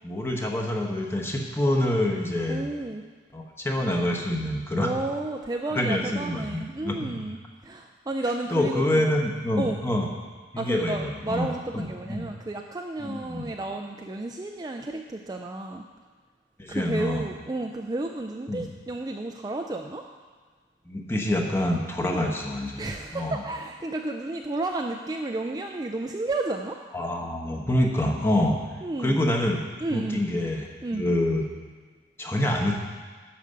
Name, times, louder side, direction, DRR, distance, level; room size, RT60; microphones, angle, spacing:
voice 1, 0.0-2.7 3.3-4.9 5.7-7.2 8.5-10.1 10.5-11.5 11.7-12.3 13.0-13.5 16.6-17.2 18.5-18.7 20.9-23.4 26.9-28.6 29.0-29.6 29.9-31.4 32.2-32.8, left 1 dB, 15° left, 1 dB, 1.0 m, -26 dB
voice 2, 2.5-3.0 4.8-9.1 9.6-9.8 10.6-15.8 16.7-20.1 22.0-22.3 22.8-26.8 28.8-29.2 29.8-30.2 30.8-31.0, right 2 dB, 20° right, 3 dB, 0.4 m, -32 dB
11.5 x 5.1 x 6.7 m, 1.5 s
head